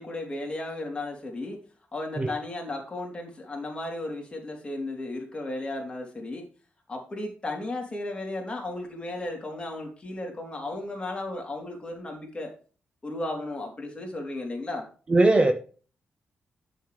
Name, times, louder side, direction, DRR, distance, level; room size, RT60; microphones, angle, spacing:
voice 1, 0.0-1.6 1.9-6.4 6.9-12.5 13.0-14.9, left 2 dB, 25° left, 3.3 m, -34 dB
voice 2, 15.1-15.5, right 2 dB, 30° right, 1.0 m, -19 dB
9.8 x 7.2 x 3.3 m
cardioid pair, 105°, 4 cm